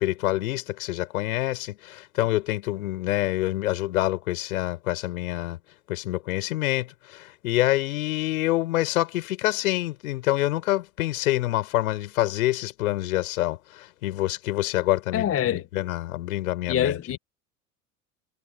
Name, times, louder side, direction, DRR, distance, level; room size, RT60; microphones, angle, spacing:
voice 1, 0.0-5.6 5.9-17.0, left 16 dB, 70° left, 7.2 m, -26 dB
voice 2, 15.1-15.6 16.7-17.2, left 10 dB, 30° left, 1.5 m, -24 dB
figure-of-eight pair, 75°, 45 cm